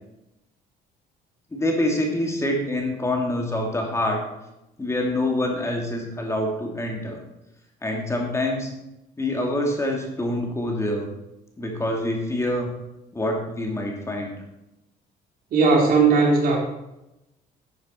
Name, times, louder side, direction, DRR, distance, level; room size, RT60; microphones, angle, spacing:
voice 1, 1.5-4.2 4.8-7.2 7.8-8.7 9.2-11.1 11.6-12.7 13.1-14.3, left 1 dB, 15° left, 1 dB, 2.5 m, -26 dB
voice 2, 15.5-16.6, right 4 dB, 60° right, -2 dB, 3.8 m, -17 dB
11.0 x 9.4 x 4.4 m, 0.90 s
cardioid pair, 110°, 17 cm